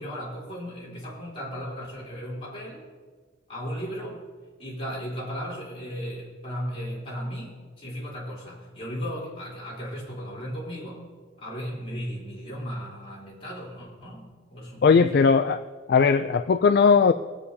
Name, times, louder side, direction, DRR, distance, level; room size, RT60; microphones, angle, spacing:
voice 1, 0.0-2.8 3.5-4.2 4.6-11.0 11.4-15.2, equal, 35° left, -5 dB, 3.6 m, -36 dB
voice 2, 14.8-15.6 15.9-17.1, left 5 dB, 60° left, 9 dB, 0.3 m, -18 dB
20.0 x 8.5 x 2.8 m, 1.5 s
head